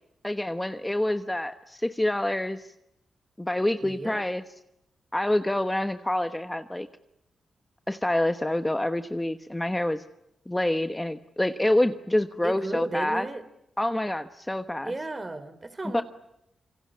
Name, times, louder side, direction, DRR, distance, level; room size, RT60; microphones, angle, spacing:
voice 1, 0.2-2.7 3.4-4.4 5.1-6.9 7.9-10.0 10.5-13.3 13.8-14.9 15.9-16.0, left 1 dB, 10° left, 8 dB, 1.1 m, -27 dB
voice 2, 3.8-4.2 12.4-13.4 14.8-16.0, right 2 dB, 25° right, 13 dB, 3.2 m, -34 dB
27.0 x 24.5 x 8.6 m, 0.83 s
cardioid pair, 90°, 0 cm